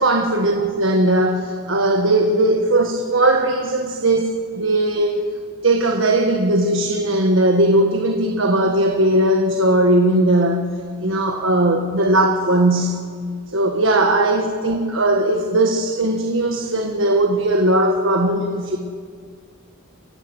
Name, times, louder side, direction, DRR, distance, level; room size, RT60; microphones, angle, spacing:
voice 1, 0.0-5.3 5.6-10.7 11.0-13.0 13.5-18.8, right 1 dB, 65° right, 3 dB, 1.5 m, -18 dB
29.5 x 15.5 x 7.9 m, 2.1 s
head